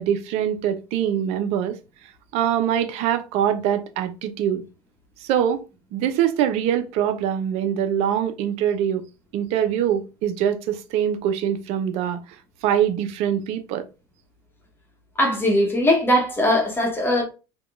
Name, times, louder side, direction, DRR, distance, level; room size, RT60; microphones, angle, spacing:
voice 1, 0.0-1.7 2.3-4.6 5.2-5.6 5.9-9.1 9.3-12.2 12.6-13.8, right 9 dB, 60° right, 0.5 m, -23 dB
voice 2, 15.2-17.2, left 1 dB, 20° left, 0.9 m, -20 dB
3.5 x 2.2 x 2.3 m
hypercardioid pair, 80°, 12 cm